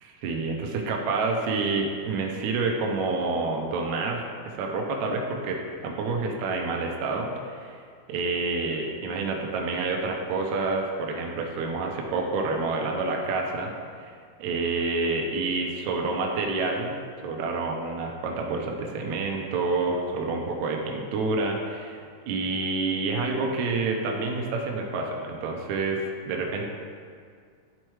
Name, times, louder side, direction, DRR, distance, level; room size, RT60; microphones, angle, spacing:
voice 1, 0.2-7.8 8.1-13.7 14.0-14.1 14.4-16.9 17.2-26.6, right 3 dB, 75° right, 1 dB, 1.8 m, -28 dB
11.0 x 4.4 x 3.1 m, 2.1 s
omnidirectional pair, 3.9 m